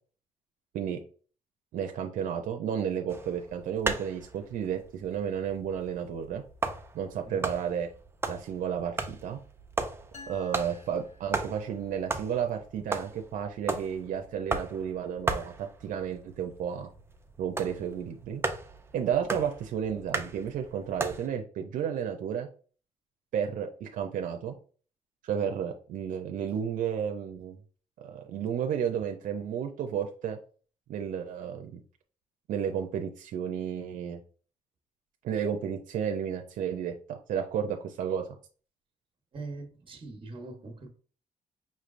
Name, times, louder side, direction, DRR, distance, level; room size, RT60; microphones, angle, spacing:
voice 1, 1.7-6.4 6.9-7.9 8.3-9.4 10.3-16.9 17.4-18.4 18.9-22.5 23.3-24.5 25.2-27.6 28.0-30.4 30.9-31.8 32.5-34.2 35.2-38.3, right 8 dB, 80° right, 0.5 m, -32 dB
sound 1, 3.1-21.3, right 3 dB, 20° right, 0.5 m, -37 dB
sound 2, 10.1-11.9, left 3 dB, 55° left, 1.0 m, -51 dB
voice 2, 39.3-40.9, right 3 dB, 40° right, 1.1 m, -42 dB
5.5 x 3.2 x 2.5 m
cardioid pair, 120°, 13 cm